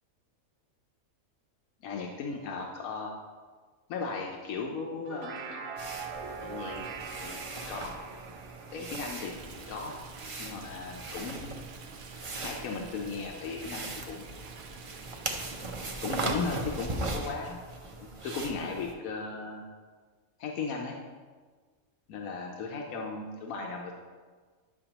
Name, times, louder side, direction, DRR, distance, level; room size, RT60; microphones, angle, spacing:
voice 1, 1.8-3.1 3.9-5.7 6.4-6.9 7.2-7.9 8.7-9.3 9.7-10.0 10.4-11.6 12.4-14.3 16.0-17.6 18.0-19.7 20.4-21.0 22.1-23.9, left 4 dB, 85° left, 0 dB, 1.2 m, -36 dB
sound 1, 4.9-10.4, right 5 dB, 65° right, 0.8 m, -42 dB
sound 2, 5.8-18.9, right 2 dB, 40° right, 0.5 m, -39 dB
Stream, 9.2-17.0, right 5 dB, 85° right, 1.2 m, -49 dB
9.9 x 5.9 x 2.9 m, 1.5 s
omnidirectional pair, 1.4 m